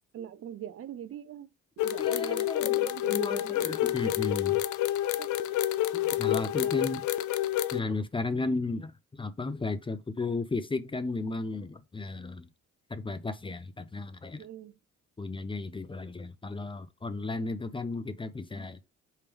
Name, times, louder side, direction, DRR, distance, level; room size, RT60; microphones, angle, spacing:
voice 1, 0.1-1.5 1.8-3.8 5.2-6.8 7.8-8.0 14.4-14.7 17.1-17.5, right 10 dB, 50° right, 0.5 m, -43 dB
sound 1, 1.8-7.8, left 13 dB, 75° left, 0.5 m, -28 dB
voice 2, 2.0-4.6 5.9-7.0 7.7-12.5 12.9-14.4 15.2-18.8, left 3 dB, 15° left, 0.5 m, -34 dB
4.5 x 3.4 x 3.4 m
cardioid pair, 90°, 30 cm